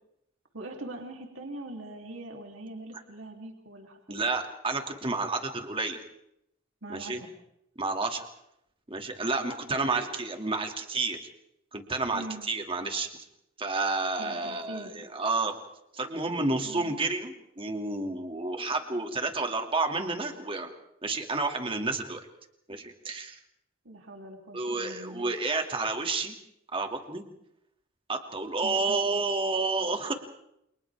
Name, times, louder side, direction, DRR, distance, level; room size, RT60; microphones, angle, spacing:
voice 1, 0.5-4.3 6.8-7.3 9.9-10.2 12.1-12.5 14.2-14.9 16.6-16.9 23.8-25.3 28.6-29.2, right 2 dB, 70° right, 1 dB, 3.3 m, -42 dB
voice 2, 4.1-6.0 6.9-7.2 7.8-8.3 8.9-11.2 11.7-13.1 13.6-15.5 15.9-20.7 21.0-22.2 22.7-23.4 24.5-26.4 26.7-27.2 28.1-30.1, right 3 dB, 25° right, 4 dB, 2.4 m, -30 dB
29.0 x 28.0 x 3.6 m, 0.79 s
head